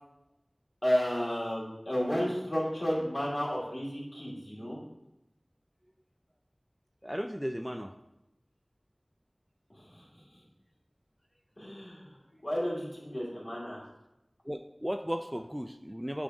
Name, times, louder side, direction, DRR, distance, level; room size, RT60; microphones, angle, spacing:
voice 1, 0.8-4.8 9.8-10.1 11.6-12.1 12.4-13.8, equal, 60° left, -5 dB, 2.4 m, -32 dB
voice 2, 7.0-7.9 14.4-16.2, equal, 5° right, 7 dB, 0.3 m, -35 dB
8.5 x 3.2 x 5.2 m, 0.90 s
wide cardioid pair, 40°, 0 cm